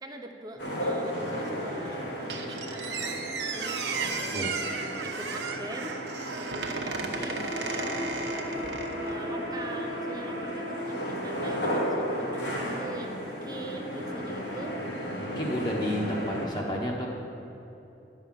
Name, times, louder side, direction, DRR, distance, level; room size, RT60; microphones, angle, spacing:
voice 1, 0.0-4.5 5.0-6.0 6.4-8.0 9.0-14.8 15.6-15.7, right 1 dB, 20° right, 3 dB, 0.6 m, -43 dB
sound 1, 0.6-16.4, equal, 80° left, 2.6 m, -34 dB
Squeak, 2.3-9.2, right 4 dB, 75° right, 1.0 m, -35 dB
voice 2, 15.2-17.1, equal, 25° left, -2 dB, 1.1 m, -31 dB
11.0 x 5.6 x 7.4 m, 2.9 s
head